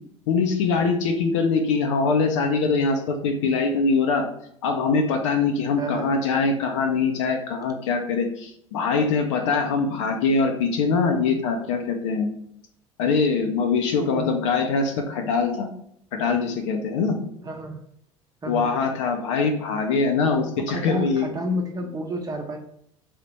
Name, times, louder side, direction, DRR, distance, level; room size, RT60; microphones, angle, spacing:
voice 1, 0.3-4.2 4.6-12.3 13.0-15.7 16.1-17.2 18.5-21.3, left 4 dB, 65° left, 5 dB, 0.6 m, -23 dB
voice 2, 5.8-6.1 14.0-14.3 17.4-17.8 18.4-18.7 20.6-22.6, equal, 20° right, 3 dB, 0.8 m, -30 dB
3.5 x 2.8 x 4.2 m, 0.71 s
figure-of-eight pair, 65°, 17 cm